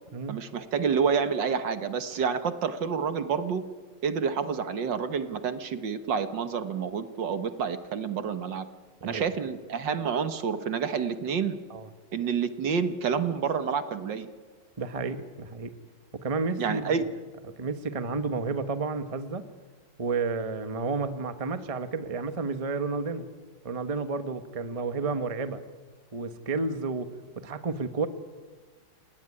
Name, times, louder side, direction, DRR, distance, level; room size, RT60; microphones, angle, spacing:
voice 1, 0.3-3.6 4.0-8.7 9.0-11.6 12.1-14.3 16.6-17.0, right 6 dB, 65° right, 10 dB, 2.0 m, -28 dB
voice 2, 14.8-15.7 16.1-17.0 17.5-19.5 20.0-23.3 23.6-25.6 26.1-28.1, right 4 dB, 20° right, 10 dB, 1.0 m, -31 dB
28.5 x 18.5 x 9.9 m, 1.5 s
omnidirectional pair, 2.2 m